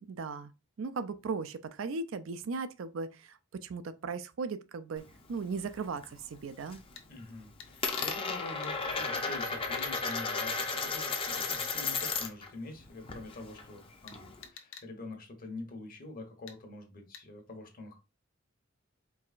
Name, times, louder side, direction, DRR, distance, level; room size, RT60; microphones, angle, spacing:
voice 1, 0.1-0.5 0.8-6.8, right 4 dB, 75° right, 0.4 m, -37 dB
Coin (dropping), 5.0-6.1 6.4-6.9 7.2-12.5 12.8-14.5, left 4 dB, 25° left, 0.6 m, -34 dB
sound 1, 7.0-7.1 7.6-7.7 8.0-8.1 8.6-8.8 9.8-10.2 11.2-11.7 12.0-12.1 14.1-14.9 16.5-16.6 17.1-17.2, left 7 dB, 70° left, 0.7 m, -49 dB
voice 2, 7.1-18.0, left 2 dB, 45° left, 1.1 m, -45 dB
4.6 x 3.3 x 2.4 m
head